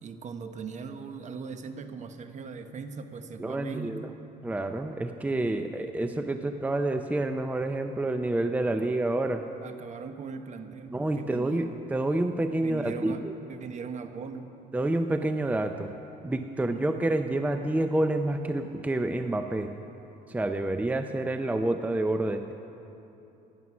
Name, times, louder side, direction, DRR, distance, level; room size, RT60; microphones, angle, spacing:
voice 1, 0.0-4.1 5.4-5.7 8.8-9.0 9.6-11.8 12.6-14.5 16.6-17.1, right 5 dB, 45° right, 8 dB, 1.1 m, -40 dB
voice 2, 3.4-4.1 4.4-9.5 10.9-13.3 14.7-15.9 16.2-19.7 20.3-22.5, right 2 dB, 10° right, 7 dB, 0.5 m, -28 dB
15.5 x 11.0 x 6.1 m, 2.9 s
cardioid pair, 110°, 17 cm